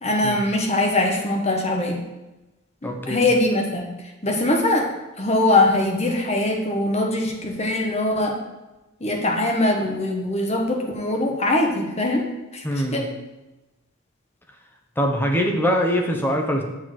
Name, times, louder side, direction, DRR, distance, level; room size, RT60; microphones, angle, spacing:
voice 1, 0.0-2.0 2.8-3.9 4.2-4.9 5.2-8.4 9.0-12.3 12.5-13.1, left 2 dB, 30° left, 1 dB, 1.1 m, -22 dB
voice 2, 2.8-3.3 12.6-13.0 15.0-16.6, equal, 10° left, 1 dB, 0.9 m, -23 dB
7.0 x 4.1 x 6.3 m, 1.0 s
head